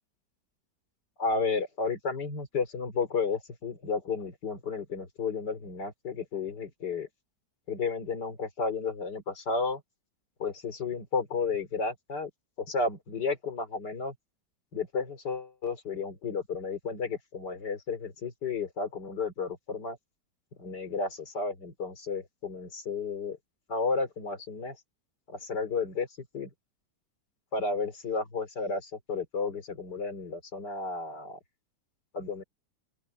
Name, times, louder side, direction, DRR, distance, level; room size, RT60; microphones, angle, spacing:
voice 1, 1.2-7.1 7.7-9.8 10.4-12.3 12.6-14.1 14.7-20.0 20.6-23.4 23.7-24.8 25.3-26.1 26.3-26.5 27.5-31.4 32.1-32.4, left 4 dB, 70° left, 3.8 m, -32 dB
open air
omnidirectional pair, 1.9 m